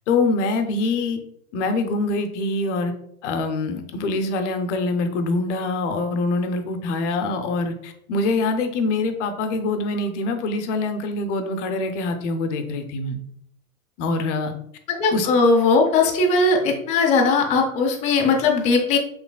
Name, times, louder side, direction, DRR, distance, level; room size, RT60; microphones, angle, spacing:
voice 1, 0.1-1.2 1.5-2.9 3.2-13.2 14.0-14.5 15.1-15.3, left 3 dB, 55° left, 7 dB, 0.7 m, -24 dB
voice 2, 14.9-19.0, left 3 dB, 15° left, 0 dB, 0.5 m, -19 dB
4.9 x 3.2 x 2.2 m, 0.73 s
hypercardioid pair, 100°, 43 cm